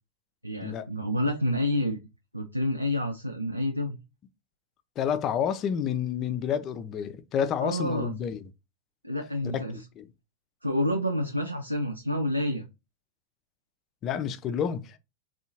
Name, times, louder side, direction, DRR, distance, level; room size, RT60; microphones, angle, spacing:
voice 1, 0.4-2.0 2.3-4.0 7.6-8.1 9.0-9.8 10.6-12.6, left 1 dB, 85° right, 0.4 m, -28 dB
voice 2, 5.0-8.4 9.4-9.6 10.0-10.1 14.0-15.0, left 8 dB, 30° left, 0.4 m, -29 dB
3.6 x 2.4 x 2.7 m
figure-of-eight pair, 90°, 0 cm